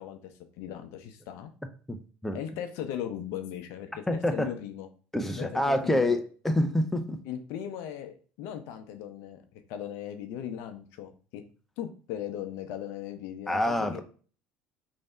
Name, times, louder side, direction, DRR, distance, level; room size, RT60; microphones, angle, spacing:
voice 1, 0.0-1.5 2.3-4.9 5.3-6.2 7.2-11.4 11.8-14.0, left 10 dB, 70° left, 0.6 m, -38 dB
voice 2, 4.1-4.5 5.1-7.2 13.5-14.0, left 1 dB, 5° left, 0.6 m, -27 dB
3.2 x 2.7 x 4.2 m
hypercardioid pair, 80°, 5 cm